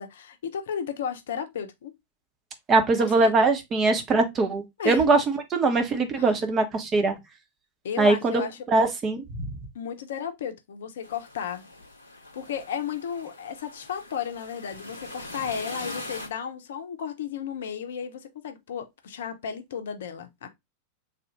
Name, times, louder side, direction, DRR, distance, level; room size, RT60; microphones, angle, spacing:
voice 1, 0.0-1.9 3.0-3.3 4.8-5.0 6.1-6.3 7.8-8.6 9.7-11.6 12.3-20.5, left 7 dB, 60° left, 0.6 m, -34 dB
voice 2, 2.7-7.2 8.0-8.4 8.7-9.6, right 3 dB, 25° right, 0.8 m, -22 dB
sound 1, 11.0-16.3, left 2 dB, 90° right, 1.6 m, -41 dB
3.4 x 2.4 x 2.9 m
figure-of-eight pair, 90°, 0 cm